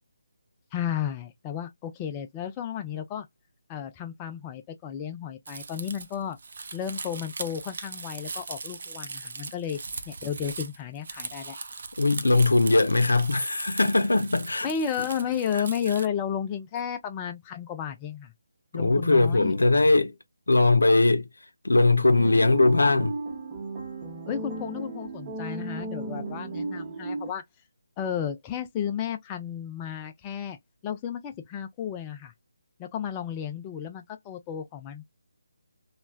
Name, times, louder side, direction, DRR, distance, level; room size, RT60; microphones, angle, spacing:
voice 1, 0.7-3.3 3.7-6.4 6.7-9.8 10.1-11.6 14.6-18.3 18.7-19.5 24.3-27.4 28.0-30.6 30.8-32.3 32.8-35.1, left 8 dB, 20° left, 0.4 m, -33 dB
Crumpling crinkling, 5.5-16.1, right 4 dB, 60° right, 0.5 m, -39 dB
voice 2, 12.0-14.7 15.5-15.6 18.7-20.1 20.5-21.3 21.6-23.2, left 2 dB, 85° left, 0.6 m, -20 dB
sound 1, 22.1-27.3, right 2 dB, 25° right, 0.8 m, -35 dB
3.2 x 2.2 x 2.3 m
figure-of-eight pair, 160°, 0 cm